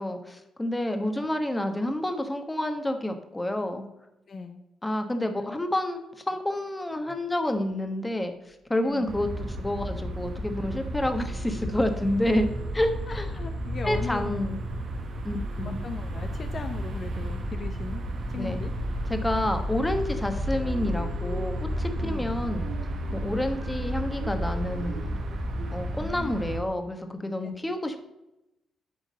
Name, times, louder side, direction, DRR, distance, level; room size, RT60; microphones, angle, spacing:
voice 1, 0.0-3.8 4.8-6.0 6.3-8.3 8.7-12.5 12.7-13.3 13.8-14.6 15.2-15.8 18.3-18.6 19.1-22.7 23.1-25.2 25.7-28.0, left 1 dB, 15° left, 6 dB, 1.2 m, -29 dB
voice 2, 4.3-4.6 5.4-5.6 8.8-9.2 13.1-14.4 15.8-18.0 18.3-18.7 22.0-22.4 26.0-26.6 27.4-27.6, left 4 dB, 50° left, 6 dB, 0.7 m, -38 dB
sound 1, 8.9-22.5, equal, 30° right, 1.4 m, -40 dB
sound 2, 9.1-26.6, equal, 60° right, 1.3 m, -33 dB
sound 3, 20.5-25.7, right 5 dB, 85° right, 2.4 m, -43 dB
9.4 x 3.8 x 6.2 m, 0.92 s
cardioid pair, 70°, 0 cm